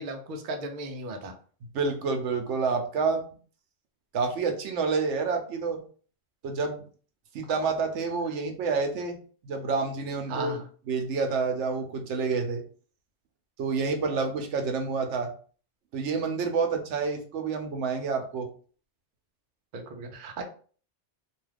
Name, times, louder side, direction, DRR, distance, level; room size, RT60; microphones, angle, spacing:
voice 1, 0.0-1.3 10.3-10.7 19.7-20.4, right 2 dB, 55° right, 4 dB, 0.6 m, -36 dB
voice 2, 1.7-3.2 4.1-5.8 6.4-6.8 7.3-9.2 9.4-10.5 10.9-12.6 13.6-15.3 15.9-18.5, right 4 dB, 85° right, 4 dB, 0.9 m, -28 dB
2.6 x 2.3 x 3.3 m, 0.42 s
omnidirectional pair, 1.2 m